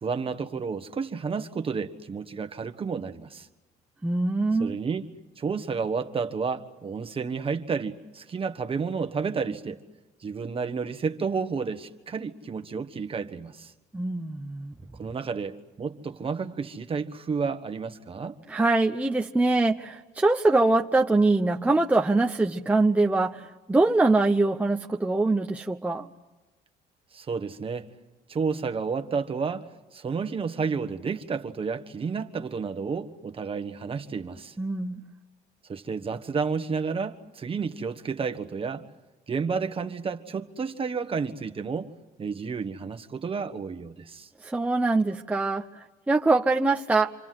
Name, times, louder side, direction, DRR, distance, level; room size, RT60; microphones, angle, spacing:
voice 1, 0.0-3.5 4.6-5.1 5.4-9.8 10.2-13.7 15.0-18.4 27.1-27.9 28.3-34.6 35.7-38.8 39.3-41.9 42.2-44.3, right 5 dB, 35° right, 1.5 m, -31 dB
voice 2, 4.0-4.8 13.9-14.7 18.5-26.1 34.6-35.0 44.4-47.1, right 2 dB, 10° right, 0.9 m, -23 dB
27.5 x 26.0 x 7.8 m
cardioid pair, 110°, 17 cm